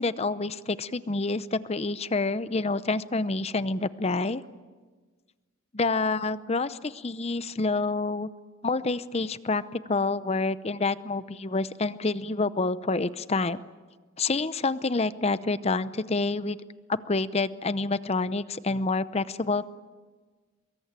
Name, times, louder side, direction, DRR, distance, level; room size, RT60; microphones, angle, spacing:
voice 1, 0.0-4.4 5.7-8.3 8.6-13.6 14.2-16.6 16.9-19.6, left 3 dB, 30° left, 14 dB, 0.7 m, -28 dB
24.0 x 22.5 x 8.9 m, 1.4 s
head